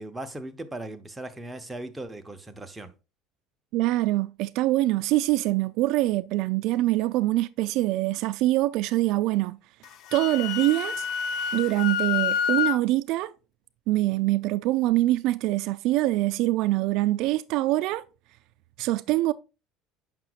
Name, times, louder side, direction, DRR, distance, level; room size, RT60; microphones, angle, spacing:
voice 1, 0.0-2.9, right 1 dB, 10° right, 0.7 m, -38 dB
voice 2, 3.7-9.6 10.1-11.1 11.5-13.3 13.9-18.0 18.8-19.3, right 17 dB, 65° right, 0.3 m, -24 dB
Wind instrument woodwind instrument, 9.8-12.8, left 8 dB, 55° left, 0.6 m, -28 dB
7.6 x 5.8 x 2.4 m
cardioid pair, 120°, 0 cm